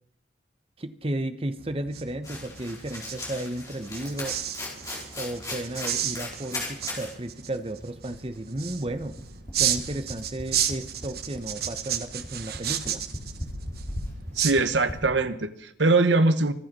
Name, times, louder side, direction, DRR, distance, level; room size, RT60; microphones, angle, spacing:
voice 1, 0.8-4.4 5.2-9.2 9.6-13.0, right 1 dB, 30° right, 10 dB, 1.0 m, -33 dB
sound 1, 1.6-15.2, right 10 dB, 55° right, 1.1 m, -33 dB
sound 2, 2.2-7.1 7.5-7.6 7.8-14.9, left 2 dB, 20° left, 4.7 m, -38 dB
voice 2, 14.4-16.5, right 3 dB, 80° right, 11 dB, 1.2 m, -22 dB
24.5 x 8.5 x 5.4 m, 0.73 s
head